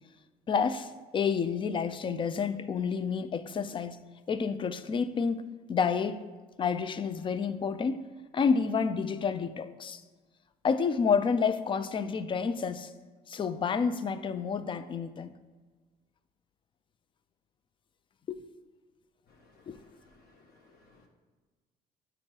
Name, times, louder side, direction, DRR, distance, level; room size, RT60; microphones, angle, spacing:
voice 1, 0.5-4.0 4.3-6.2 6.6-8.0 8.3-10.0 10.6-12.9 13.3-15.3 18.3-18.4 19.7-19.8, left 6 dB, 30° left, 0.3 m, -29 dB
voice 2, 19.3-21.1, left 2 dB, 65° left, 1.0 m, -61 dB
8.6 x 3.0 x 4.4 m
cardioid pair, 110°, 17 cm